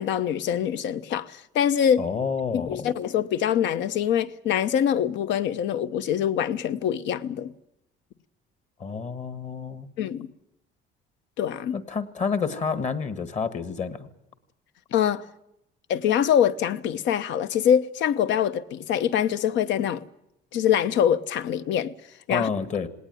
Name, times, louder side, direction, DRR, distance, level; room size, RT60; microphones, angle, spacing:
voice 1, 0.0-2.0 2.5-7.5 10.0-10.3 11.4-11.8 14.9-15.3 15.9-20.0 20.5-21.9 22.3-22.5, left 9 dB, 70° left, 1.0 m, -24 dB
voice 2, 2.0-2.9 8.8-9.9 11.7-14.1 22.3-22.9, left 5 dB, 35° left, 1.6 m, -29 dB
19.0 x 18.5 x 9.3 m
cardioid pair, 150°, 19 cm